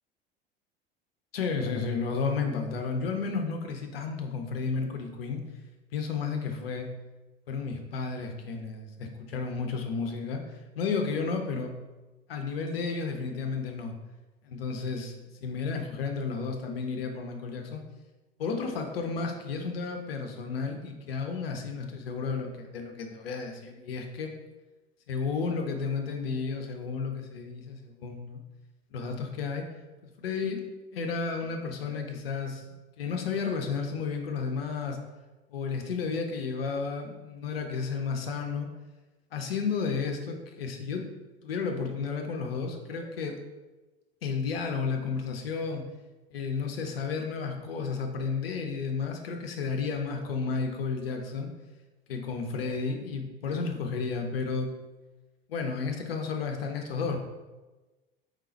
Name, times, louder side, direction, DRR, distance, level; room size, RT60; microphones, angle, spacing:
voice 1, 1.3-5.4 5.9-6.9 7.5-10.4 10.8-11.7 12.3-13.9 14.4-15.1 15.4-17.8 18.4-24.3 25.1-28.4 28.9-29.7 30.0-30.6 30.9-32.6 33.0-35.0 35.5-38.7 39.3-41.1 41.4-43.4 44.2-45.8 46.3-51.5 52.1-54.7 55.5-57.2, left 5 dB, 80° left, 4 dB, 0.7 m, -32 dB
3.8 x 3.2 x 4.3 m, 1.2 s
figure-of-eight pair, 70°, 29 cm